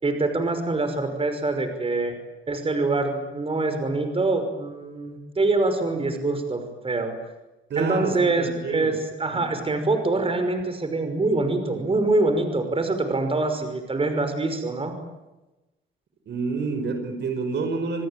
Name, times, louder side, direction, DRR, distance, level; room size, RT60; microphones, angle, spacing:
voice 1, 0.0-2.2 2.5-7.1 7.8-15.0, right 2 dB, 30° right, 7 dB, 5.7 m, -25 dB
voice 2, 7.7-9.0 9.3-9.6 16.3-18.1, right 4 dB, 60° right, 7 dB, 5.3 m, -28 dB
28.5 x 19.5 x 9.2 m, 1.0 s
cardioid pair, 90°, 20 cm